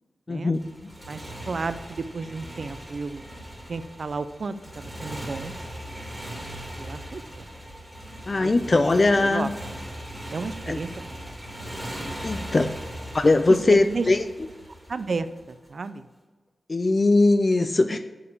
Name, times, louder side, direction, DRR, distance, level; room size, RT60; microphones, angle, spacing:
voice 1, 0.3-0.6 8.3-9.5 10.7-10.8 12.2-12.7 13.1-14.2 16.7-18.0, left 2 dB, 40° left, 8 dB, 0.4 m, -20 dB
Motorcycle, 0.5-15.7, equal, 5° right, 1.8 m, -39 dB
voice 2, 1.1-3.3 3.7-5.5 6.8-7.5 8.3-9.7 10.3-11.2 12.3-12.5 13.5-14.1 14.9-16.1, right 4 dB, 60° right, 12 dB, 0.4 m, -33 dB
7.4 x 4.8 x 6.7 m, 1.3 s
wide cardioid pair, 125°, 0 cm